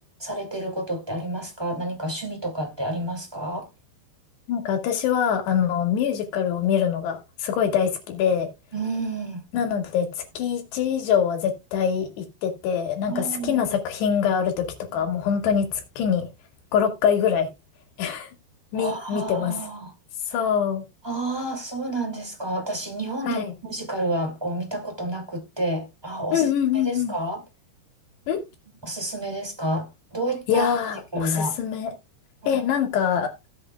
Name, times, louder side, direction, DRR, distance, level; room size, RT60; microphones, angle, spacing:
voice 1, 0.2-3.7 8.7-9.4 13.1-13.6 18.7-19.9 20.3-20.5 21.0-26.5 26.7-27.4 28.8-30.7 31.1-31.6 32.4-32.6, right 1 dB, 10° right, 1.4 m, -30 dB
voice 2, 4.5-8.5 9.5-14.7 14.9-16.3 16.7-17.5 18.0-18.3 18.7-19.6 20.3-20.8 23.3-23.5 26.3-27.1 28.3-28.4 30.5-31.9 32.5-33.3, left 8 dB, 70° left, 4.1 m, -24 dB
17.5 x 7.6 x 2.3 m
omnidirectional pair, 5.1 m